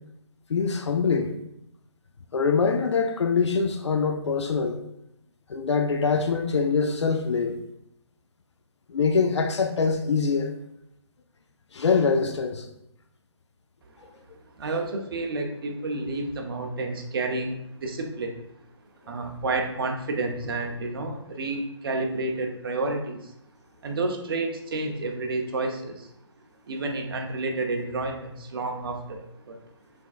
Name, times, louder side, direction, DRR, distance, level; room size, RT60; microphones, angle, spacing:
voice 1, 0.5-1.3 2.3-4.8 5.5-7.6 8.9-10.5 11.7-12.7 14.0-14.1, left 5 dB, 70° left, 0.5 m, -24 dB
voice 2, 14.6-18.4 19.1-23.3 23.8-26.1 26.7-29.6, right 2 dB, 50° right, 0.8 m, -30 dB
5.9 x 3.5 x 2.4 m
figure-of-eight pair, 145°, 15 cm